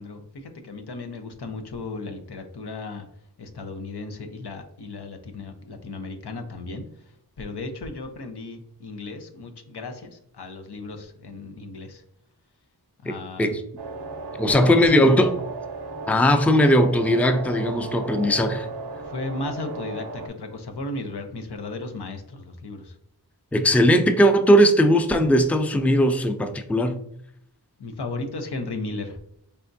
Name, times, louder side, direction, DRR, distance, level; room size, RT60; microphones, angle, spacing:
voice 1, 0.0-3.1 3.4-12.0 13.0-13.5 14.5-15.2 19.1-23.0 27.8-29.2, left 3 dB, 85° left, 6 dB, 0.7 m, -35 dB
sound 1, 13.8-20.3, right 3 dB, 90° right, 0.6 m, -35 dB
voice 2, 14.4-15.3 16.1-18.7 23.5-27.0, equal, 5° left, 7 dB, 0.4 m, -18 dB
4.2 x 3.4 x 2.6 m, 0.71 s
wide cardioid pair, 55°, 39 cm